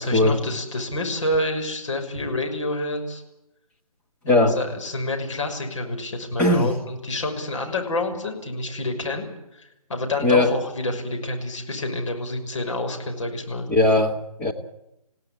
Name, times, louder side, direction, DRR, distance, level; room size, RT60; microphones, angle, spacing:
voice 1, 0.0-3.2 4.2-9.3 9.5-13.7, left 2 dB, 50° left, 4 dB, 6.1 m, -28 dB
voice 2, 4.3-4.6 6.4-6.7 10.2-10.5 13.7-14.5, left 2 dB, 5° left, -1 dB, 1.4 m, -19 dB
28.5 x 17.0 x 8.7 m, 0.89 s
figure-of-eight pair, 155°, 20 cm